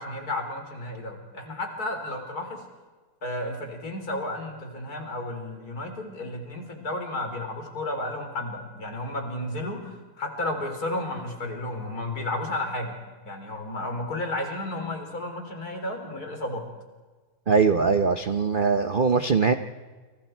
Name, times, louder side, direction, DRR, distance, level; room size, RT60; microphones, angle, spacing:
voice 1, 0.0-2.6 3.2-13.0 13.2-16.7, left 1 dB, 50° left, 4 dB, 4.4 m, -32 dB
voice 2, 17.5-19.5, right 5 dB, 40° right, 8 dB, 0.7 m, -21 dB
30.0 x 28.5 x 4.6 m, 1.4 s
omnidirectional pair, 2.1 m